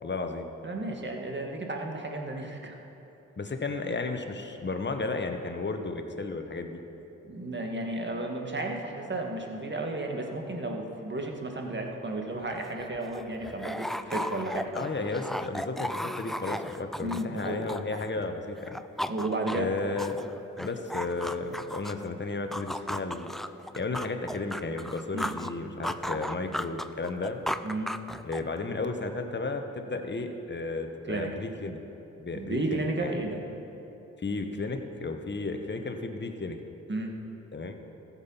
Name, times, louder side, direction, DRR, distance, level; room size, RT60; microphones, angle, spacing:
voice 1, 0.0-0.5 3.4-6.8 14.7-18.8 19.5-20.2 20.6-23.3 23.8-27.4 28.2-31.8 32.2-33.2 34.2-36.6 37.5-37.7, left 3 dB, 35° left, 5 dB, 1.3 m, -33 dB
voice 2, 0.6-2.8 7.2-14.7 17.0-17.7 19.1-19.7 25.1-25.3 25.6-25.8 27.6-27.9 31.1-31.3 32.3-33.4 36.9-37.1, right 2 dB, 35° right, 2 dB, 1.9 m, -33 dB
Zombie groan eating, 12.4-12.5 12.8-18.3 18.6-22.1 22.5-25.5 25.8-28.6, equal, ahead, 0.4 m, -35 dB
14.5 x 7.4 x 5.7 m, 3.0 s
supercardioid pair, 45°, 33 cm